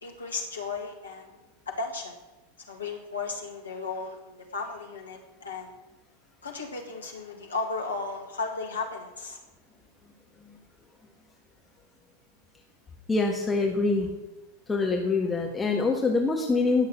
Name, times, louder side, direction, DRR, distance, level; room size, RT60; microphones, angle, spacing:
voice 1, 0.0-1.3 1.7-2.1 2.7-5.7 6.4-9.4, left 4 dB, 75° left, 2 dB, 2.0 m, -35 dB
voice 2, 13.1-14.1 14.7-16.9, left 3 dB, 10° left, 1 dB, 1.6 m, -25 dB
17.5 x 6.6 x 7.6 m, 1.1 s
figure-of-eight pair, 90°, 0 cm